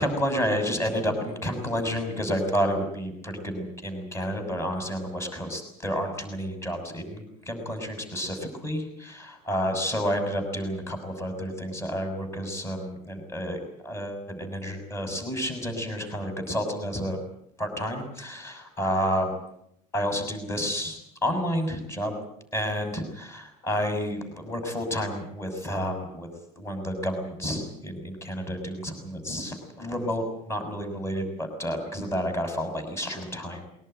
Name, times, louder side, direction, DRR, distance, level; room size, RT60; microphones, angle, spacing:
voice 1, 0.0-17.2 17.6-19.3 19.9-22.1 22.5-26.3 26.6-33.6, equal, 15° left, 6 dB, 6.6 m, -30 dB
22.0 x 19.5 x 9.3 m, 0.74 s
cardioid pair, 150°, 17 cm